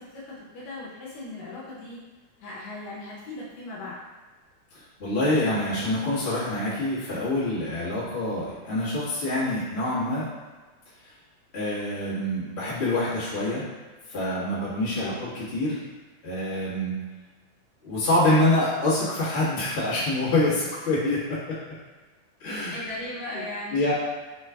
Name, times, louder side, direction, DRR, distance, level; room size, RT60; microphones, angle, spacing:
voice 1, 0.0-2.0 2.4-4.0 15.0-15.2 22.7-23.9, left 2 dB, 70° left, -7 dB, 2.0 m, -38 dB
voice 2, 5.0-10.3 11.5-13.6 14.1-15.8 16.2-17.0 17.8-21.6 22.4-22.8 23.3-23.4 23.7-23.9, left 1 dB, 45° left, -11 dB, 0.8 m, -26 dB
5.0 x 2.4 x 3.3 m, 1.3 s
omnidirectional pair, 3.7 m